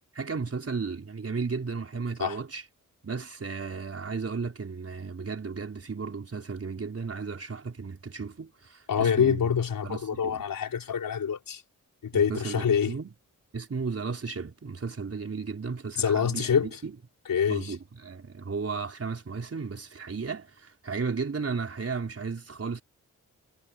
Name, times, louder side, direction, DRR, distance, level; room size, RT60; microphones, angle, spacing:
voice 1, 0.1-2.6 3.0-9.6 9.8-10.4 12.1-13.1 13.5-16.9 17.5-22.8, right 5 dB, 45° right, 4.8 m, -34 dB
voice 2, 8.9-11.6 12.0-12.9 16.0-16.7 17.3-17.7, left 7 dB, 80° left, 4.6 m, -26 dB
cardioid pair, 75°, 33 cm